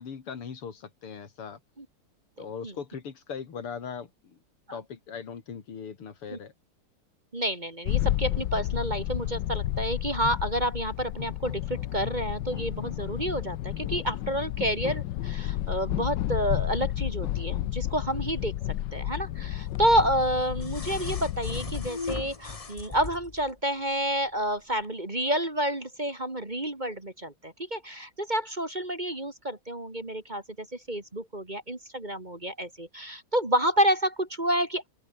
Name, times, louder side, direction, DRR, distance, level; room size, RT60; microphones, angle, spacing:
voice 1, 0.0-1.6 2.4-4.4 4.7-6.5, left 6 dB, 85° left, 3.4 m, -39 dB
voice 2, 7.3-18.5 18.9-34.9, right 1 dB, 20° right, 2.2 m, -29 dB
sound 1, 7.8-21.9, left 13 dB, 65° left, 1.3 m, -31 dB
sound 2, 19.7-23.5 24.8-24.9, left 4 dB, 35° left, 0.5 m, -39 dB
open air
omnidirectional pair, 2.4 m